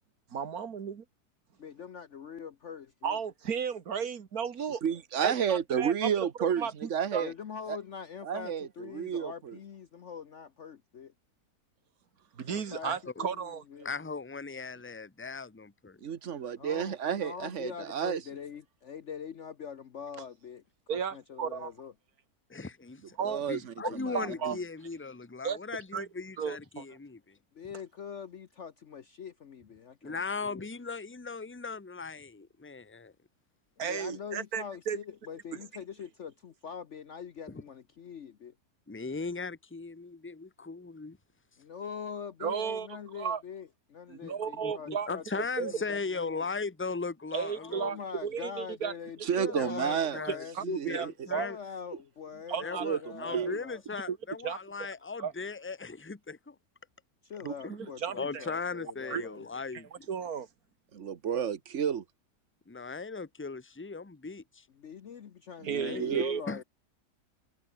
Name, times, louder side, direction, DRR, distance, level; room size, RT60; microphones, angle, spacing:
voice 1, 0.3-1.0 3.0-4.8 5.2-6.1 6.6-7.3 12.4-13.6 20.9-21.7 23.2-23.4 24.1-24.6 25.4-25.6 25.9-26.1 26.4-26.8 33.8-35.0 42.4-42.9 43.1-43.4 44.1-45.1 45.6-45.7 47.3-48.0 48.2-48.9 49.5-49.6 50.3-50.6 50.9-51.1 51.3-51.5 52.5-52.9 53.3-53.6 54.1-54.2 54.4-54.6 55.2-55.3 57.4-58.4 59.1-59.3 59.7-59.8 60.1-60.5 65.6-66.4, right 7 dB, 70° right, 2.1 m, -34 dB
voice 2, 1.6-3.2 7.2-11.1 12.4-12.9 13.2-13.9 16.6-20.6 20.9-21.9 24.1-24.6 27.5-30.7 33.8-38.5 41.6-46.5 47.6-50.6 51.3-53.8 57.2-59.5 64.7-66.6, left 7 dB, 55° left, 1.2 m, -43 dB
voice 3, 4.8-7.3 7.7-7.8 8.2-9.6 16.0-18.2 23.2-24.6 49.3-50.2 50.6-51.1 52.8-53.5 60.9-62.0 65.6-66.2, right 8 dB, 50° right, 1.5 m, -31 dB
voice 4, 13.8-16.0 22.5-23.0 23.5-27.4 30.0-33.1 38.9-41.2 44.2-44.3 44.6-48.0 49.6-51.6 52.6-56.5 57.6-57.9 58.2-60.1 62.7-64.6 65.8-66.1 66.5-66.6, left 4 dB, 10° left, 0.8 m, -38 dB
omnidirectional pair, 1.6 m